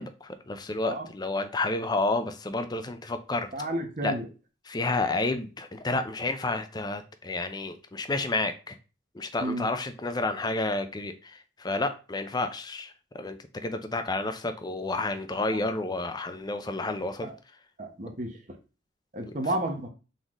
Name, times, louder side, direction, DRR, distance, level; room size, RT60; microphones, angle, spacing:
voice 1, 0.0-3.5 4.0-4.1 4.7-8.8 9.1-17.3, left 2 dB, 20° left, 8 dB, 0.5 m, -30 dB
voice 2, 3.5-4.2 9.4-9.7 17.2-17.3 17.8-18.4 19.1-19.9, right 1 dB, 40° right, 3 dB, 0.9 m, -31 dB
4.0 x 3.8 x 3.0 m, 0.33 s
head